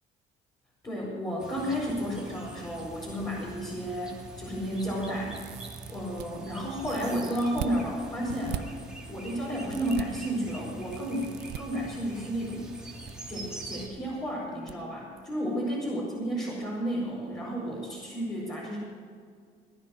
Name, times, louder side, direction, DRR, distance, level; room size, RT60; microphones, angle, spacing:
voice 1, 0.8-5.4 5.9-8.7 9.1-12.8 13.3-18.8, equal, 25° left, -6 dB, 5.1 m, -32 dB
sound 1, 1.4-13.9, right 2 dB, 5° right, 2.8 m, -44 dB
sound 2, 5.3-6.3 6.8-7.7 8.3-8.6 9.7-10.0 10.9-11.6 12.7-13.1 13.4-13.5 14.7-14.8 15.2-15.3, right 15 dB, 80° right, 0.7 m, -39 dB
18.0 x 10.5 x 6.2 m, 2.2 s
cardioid pair, 110°, 17 cm